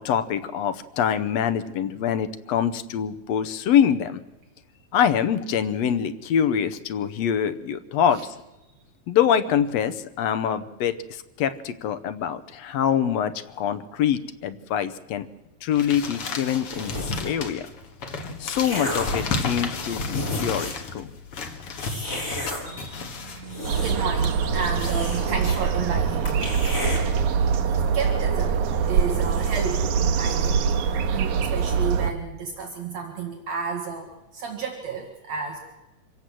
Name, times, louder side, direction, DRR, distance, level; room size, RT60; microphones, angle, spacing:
voice 1, 0.0-4.2 4.9-8.2 9.1-15.3 15.6-17.7 18.4-21.1, left 9 dB, 70° left, 12 dB, 1.9 m, -25 dB
sound 1, 15.7-24.9, left 4 dB, 55° left, 2.5 m, -33 dB
sound 2, 16.7-17.4 18.1-19.2 19.8-19.9 20.1-20.9 21.8-22.6 23.3-24.2 24.5-24.6 24.9-25.6 25.9-26.0 26.3-27.0, left 1 dB, 25° left, 5.6 m, -32 dB
voice 2, 22.7-26.6 27.9-28.6 28.9-29.9 30.2-30.7 31.1-35.6, right 5 dB, 65° right, 2 dB, 2.9 m, -32 dB
sound 3, 23.6-32.1, right 6 dB, 90° right, 2.6 m, -23 dB
25.5 x 16.5 x 7.7 m, 1.0 s
omnidirectional pair, 3.3 m